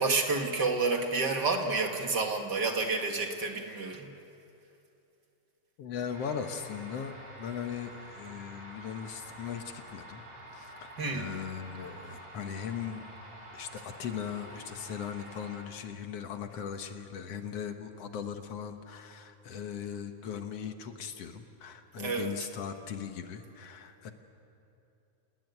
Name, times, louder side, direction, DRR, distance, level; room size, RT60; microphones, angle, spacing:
voice 1, 0.0-4.1 11.0-11.3 22.0-22.3, right 3 dB, 40° right, 4 dB, 2.1 m, -29 dB
voice 2, 5.8-10.2 10.5-13.1 13.5-24.1, left 7 dB, 60° left, 6 dB, 2.2 m, -39 dB
sound 1, 6.1-15.6, right 1 dB, 75° right, 6.3 m, -48 dB
28.0 x 18.5 x 9.6 m, 2.8 s
omnidirectional pair, 3.4 m